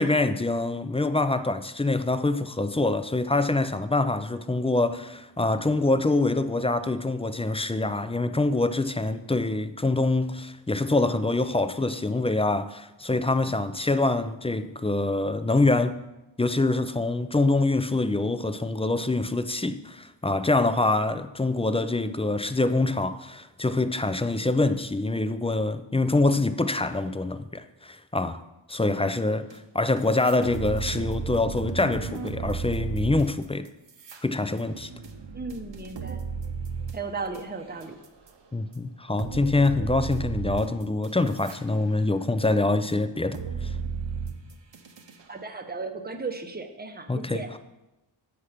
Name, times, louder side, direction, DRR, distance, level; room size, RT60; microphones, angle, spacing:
voice 1, 0.0-16.0 16.4-28.4 28.7-33.7 34.2-34.9 38.5-43.7 47.1-47.6, left 2 dB, 15° left, 0.3 m, -25 dB
sound 1, 29.5-29.6 30.0-38.3 38.7-38.8 39.2-41.6 42.0-45.2, right 5 dB, 65° right, 0.8 m, -35 dB
voice 2, 35.3-36.2 36.9-38.0 45.3-47.5, right 4 dB, 20° right, 0.8 m, -35 dB
8.3 x 5.9 x 4.9 m
wide cardioid pair, 70°, 48 cm